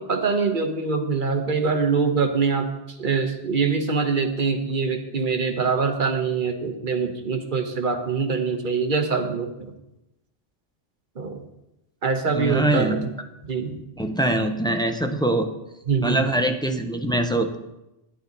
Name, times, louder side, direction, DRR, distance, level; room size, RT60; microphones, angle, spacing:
voice 1, 0.1-2.7 3.0-9.7 11.2-11.4 12.0-13.1 13.4-13.8 15.9-16.3, right 5 dB, 45° right, 5 dB, 1.1 m, -24 dB
voice 2, 12.3-13.1 14.0-15.5 16.0-17.6, right 1 dB, 5° left, 5 dB, 0.4 m, -23 dB
10.0 x 9.9 x 4.0 m, 0.92 s
omnidirectional pair, 1.2 m